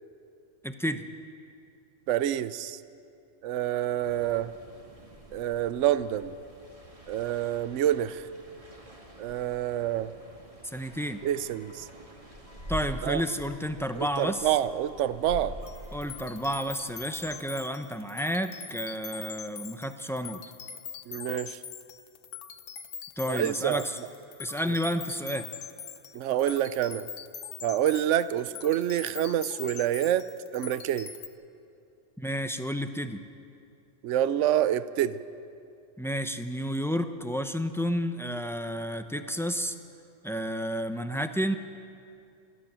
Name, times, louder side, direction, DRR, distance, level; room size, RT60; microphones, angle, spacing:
voice 1, 0.6-1.0 10.6-11.2 12.7-14.5 15.9-20.4 23.2-24.0 24.4-25.4 32.2-33.2 36.0-39.8 40.2-41.5, equal, 5° left, 8 dB, 0.4 m, -31 dB
voice 2, 2.1-2.8 3.4-4.5 5.3-6.3 7.1-8.3 9.2-10.1 11.2-11.9 13.0-13.2 14.0-15.6 21.1-21.6 23.3-23.8 26.1-27.0 27.6-30.2 30.5-31.1 34.0-35.2, right 11 dB, 65° right, 15 dB, 0.9 m, -27 dB
sound 1, 4.0-17.4, equal, 25° right, 2.1 m, -45 dB
sound 2, 15.6-31.3, left 8 dB, 65° left, 1.2 m, -43 dB
24.5 x 15.0 x 7.5 m, 2.5 s
omnidirectional pair, 1.4 m